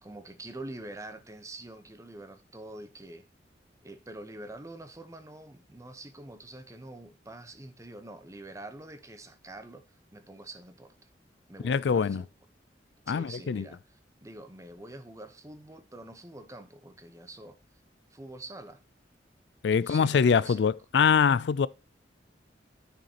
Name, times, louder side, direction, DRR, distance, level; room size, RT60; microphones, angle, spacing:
voice 1, 0.0-3.2 3.8-10.9 11.5-12.3 13.1-13.8 14.2-17.6 18.1-18.8 19.7-20.7, right 2 dB, 15° right, 0.9 m, -45 dB
voice 2, 11.6-12.2 13.1-13.7 19.6-21.7, left 6 dB, 70° left, 0.4 m, -24 dB
9.5 x 6.5 x 2.9 m
head